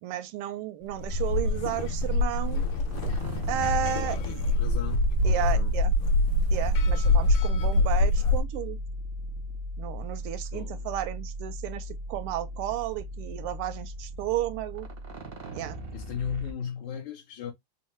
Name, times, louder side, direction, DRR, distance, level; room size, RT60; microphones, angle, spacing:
voice 1, 0.0-2.6 3.5-4.4 5.2-5.9 6.5-8.8 9.8-14.9 15.5-15.8, right 12 dB, 85° right, 1.5 m, -33 dB
sound 1, 0.9-8.4, left 2 dB, 90° left, 1.7 m, -25 dB
sound 2, 2.1-16.5, equal, 55° right, 0.6 m, -37 dB
voice 2, 4.0-5.7 10.5-10.9 15.9-17.5, left 7 dB, 70° left, 1.5 m, -36 dB
4.3 x 2.0 x 3.0 m
omnidirectional pair, 2.4 m